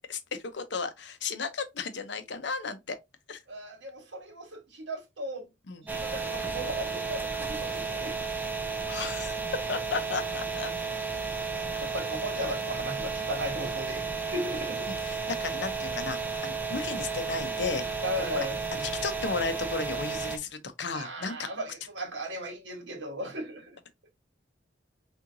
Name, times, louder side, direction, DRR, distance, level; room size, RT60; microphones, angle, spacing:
voice 1, 0.1-3.0 3.3-3.4 5.7-5.8 8.9-9.4 9.7-10.7 14.9-17.8 18.2-18.3 18.7-21.5, left 4 dB, 65° left, 0.7 m, -34 dB
voice 2, 3.5-5.5 5.8-8.2 8.9-9.1 11.6-14.9 18.0-18.6 20.9-23.8, equal, 70° right, 1.5 m, -36 dB
sound 1, 5.9-20.4, right 4 dB, 10° right, 0.6 m, -33 dB
4.4 x 3.6 x 2.6 m
head